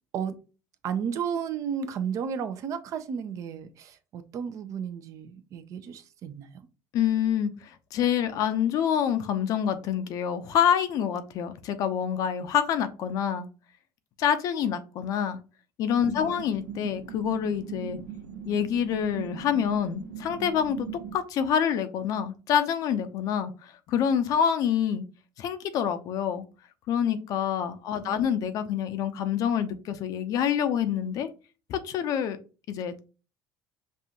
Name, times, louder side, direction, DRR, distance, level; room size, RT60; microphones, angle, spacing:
voice 1, 0.8-6.5 16.0-16.3 27.9-28.2, right 7 dB, 50° right, 0.6 m, -33 dB
voice 2, 6.9-13.5 14.2-15.4 15.8-18.0 18.5-25.0 25.4-26.5 26.9-31.3 31.7-32.4 32.7-33.0, left 8 dB, 60° left, 0.6 m, -27 dB
sound 1, 15.9-21.2, right 8 dB, 85° right, 0.9 m, -40 dB
5.4 x 2.5 x 2.8 m
supercardioid pair, 100°, 7 cm